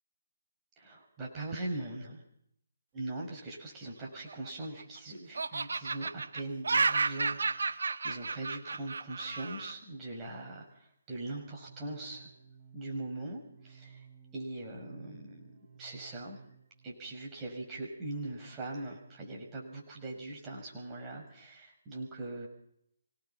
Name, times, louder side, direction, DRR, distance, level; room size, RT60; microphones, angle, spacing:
voice 1, 0.8-2.2 2.9-12.3 12.7-14.1 14.3-15.4 15.8-16.4 16.8-22.5, right 2 dB, 20° right, -1 dB, 6.1 m, -41 dB
Laughter, 4.1-5.0 5.4-9.7, right 4 dB, 75° right, 1.3 m, -32 dB
sound 1, 11.3-17.0, right 6 dB, 45° right, 3.1 m, -56 dB
25.0 x 19.0 x 5.9 m, 0.70 s
hypercardioid pair, 150°, 0 cm